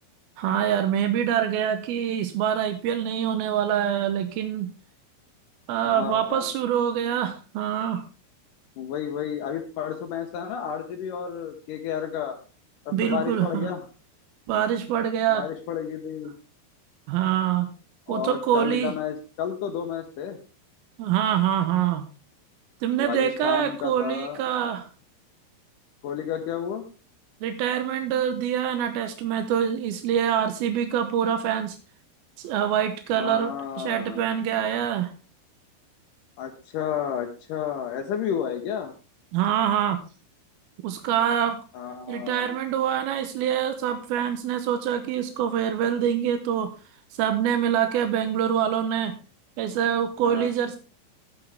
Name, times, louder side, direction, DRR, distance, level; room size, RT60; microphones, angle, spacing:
voice 1, 0.4-4.7 5.7-8.1 12.9-13.7 14.5-15.5 17.1-17.7 18.1-18.9 21.0-22.1 22.8-24.9 27.4-31.8 32.4-35.1 39.3-40.0 40.8-41.6 42.1-46.7 47.2-49.2 49.6-50.8, right 9 dB, 75° right, 8 dB, 2.3 m, -25 dB
voice 2, 5.9-6.5 8.8-12.4 12.9-13.8 15.3-16.3 18.1-20.4 23.0-24.4 26.0-26.9 33.1-34.2 36.4-38.9 41.7-42.6 50.2-50.5, left 8 dB, 85° left, 3 dB, 1.9 m, -31 dB
13.0 x 9.9 x 3.5 m, 0.34 s
omnidirectional pair, 5.2 m